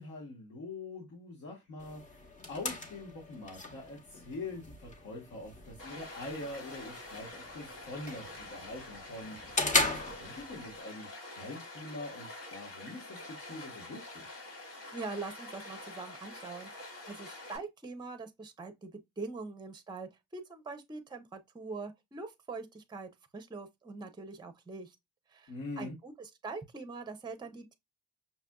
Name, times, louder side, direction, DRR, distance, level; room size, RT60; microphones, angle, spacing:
voice 1, 0.0-2.2 2.5-9.6 9.9-14.3 25.5-26.0, left 2 dB, 70° left, 1.3 m, -44 dB
sound 1, 1.8-10.8, left 2 dB, 25° left, 0.9 m, -37 dB
Stream, 5.8-17.6, left 2 dB, 90° left, 2.6 m, -47 dB
voice 2, 14.9-25.0 25.3-27.7, right 3 dB, 15° right, 0.6 m, -43 dB
5.9 x 2.5 x 2.2 m
cardioid pair, 90°, 30 cm